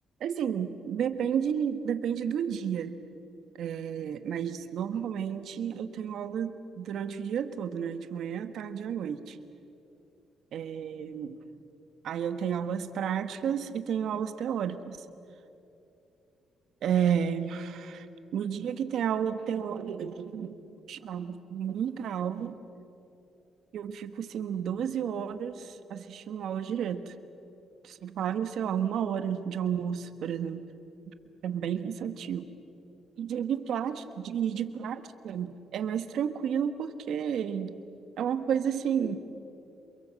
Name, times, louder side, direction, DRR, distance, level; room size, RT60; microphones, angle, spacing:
voice 1, 0.2-3.0 3.6-9.4 10.5-11.4 12.0-15.0 16.8-18.1 18.3-20.6 20.9-22.5 23.7-27.1 27.8-30.6 31.4-32.5 33.2-37.8 38.2-39.2, right 8 dB, 70° right, 10 dB, 1.4 m, -31 dB
27.5 x 22.5 x 7.7 m, 2.8 s
cardioid pair, 90°, 0 cm